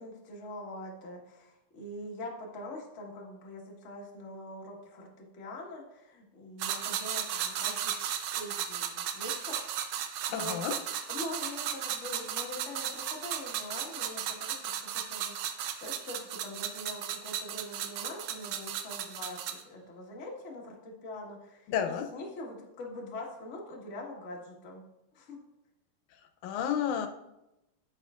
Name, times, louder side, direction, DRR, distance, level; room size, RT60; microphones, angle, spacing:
voice 1, 0.0-8.0 8.3-9.7 10.3-10.6 11.1-15.4 15.8-24.8 25.1-25.4, left 1 dB, 40° left, -2 dB, 1.0 m, -43 dB
sound 1, 6.6-19.6, right 9 dB, 75° right, 1.8 m, -35 dB
voice 2, 10.3-10.8 21.7-22.1 26.4-27.1, left 9 dB, 85° left, 6 dB, 2.1 m, -31 dB
9.1 x 8.3 x 2.4 m, 0.91 s
omnidirectional pair, 3.4 m